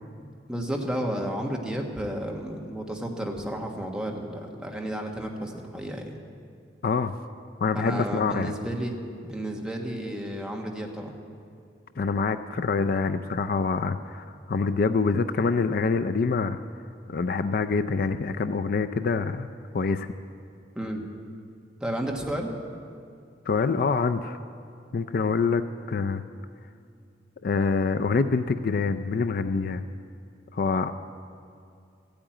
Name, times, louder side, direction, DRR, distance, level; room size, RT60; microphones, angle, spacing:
voice 1, 0.5-6.1 7.7-9.0 9.2-11.2 20.7-21.0 21.8-22.5, right 1 dB, 5° right, 0 dB, 1.4 m, -32 dB
voice 2, 6.8-7.1 7.6-8.5 12.0-16.6 17.1-19.5 19.7-20.1 23.5-24.4 24.9-26.2 27.4-29.8 30.5-30.9, left 4 dB, 55° left, 10 dB, 0.4 m, -25 dB
13.5 x 8.7 x 9.1 m, 2.4 s
head